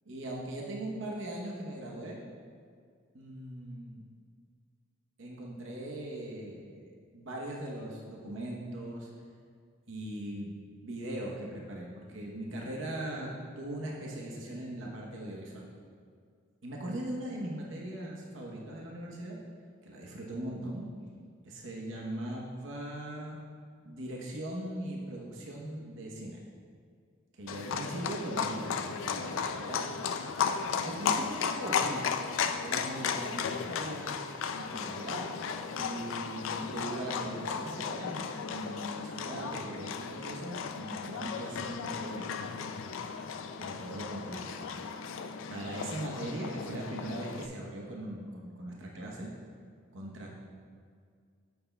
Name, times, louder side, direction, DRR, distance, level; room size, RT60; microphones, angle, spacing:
voice 1, 0.1-2.2 3.1-4.0 5.2-9.1 9.9-15.7 16.6-19.4 19.8-20.9 21.4-23.4 23.8-26.4 27.4-29.9 30.8-32.1 32.6-34.1 34.5-35.3 35.7-42.4 43.6-44.6 45.5-49.3 49.9-50.3, right 1 dB, 65° right, -2 dB, 0.9 m, -40 dB
Livestock farm animals working animals, 27.5-47.5, left 6 dB, 70° left, 0.4 m, -35 dB
9.2 x 7.0 x 2.2 m, 2.1 s
head